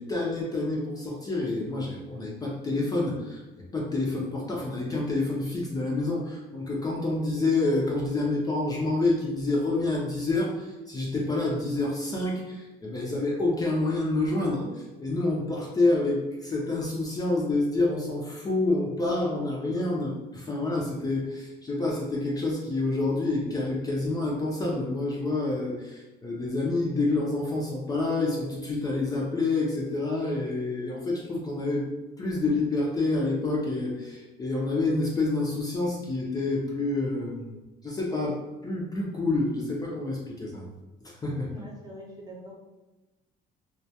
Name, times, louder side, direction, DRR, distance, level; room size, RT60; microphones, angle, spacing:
voice 1, 0.0-3.4 3.7-31.9 32.2-37.6 37.8-38.4 38.6-40.6 41.0-41.5, left 2 dB, 20° left, -3 dB, 0.5 m, -28 dB
voice 2, 41.5-42.6, equal, 25° right, -3 dB, 0.6 m, -43 dB
2.2 x 2.2 x 2.7 m, 1.1 s
cardioid pair, 110°, 17 cm